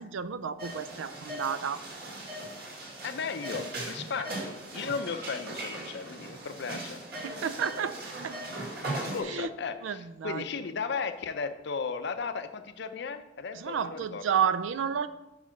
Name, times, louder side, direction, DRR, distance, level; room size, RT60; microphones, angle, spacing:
voice 1, 0.0-1.8 7.2-8.0 8.2-8.3 9.2-9.5 9.8-10.5 13.5-15.1, right 7 dB, 85° right, 14 dB, 0.4 m, -31 dB
sound 1, 0.6-9.2, right 1 dB, 55° right, 1.8 m, -39 dB
voice 2, 3.0-7.0 8.9-14.2, left 5 dB, 60° left, 10 dB, 0.5 m, -35 dB
5.6 x 4.9 x 5.7 m, 0.96 s
head